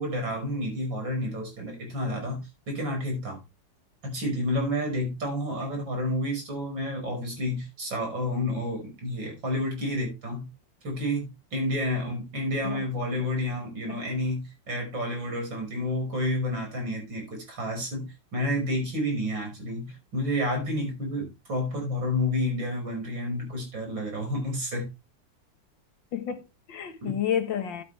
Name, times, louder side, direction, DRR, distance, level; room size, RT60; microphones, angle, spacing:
voice 1, 0.0-3.4 4.0-10.5 10.8-24.9 27.0-27.1, left 1 dB, 90° right, 6.2 m, -30 dB
voice 2, 26.1-27.8, left 9 dB, 80° left, 2.2 m, -30 dB
11.5 x 9.0 x 3.3 m
omnidirectional pair, 2.0 m